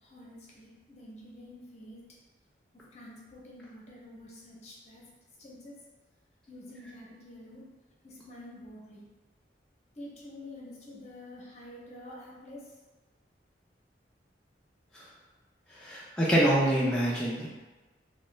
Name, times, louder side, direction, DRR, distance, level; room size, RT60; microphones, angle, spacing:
voice 1, 0.0-2.0 2.9-5.0 5.4-5.7 6.5-7.6 8.0-9.0 9.9-12.6, left 1 dB, 40° left, -4 dB, 0.7 m, -48 dB
voice 2, 15.7-17.5, right 1 dB, 5° left, -9 dB, 0.4 m, -26 dB
3.0 x 2.2 x 3.2 m, 1.2 s
head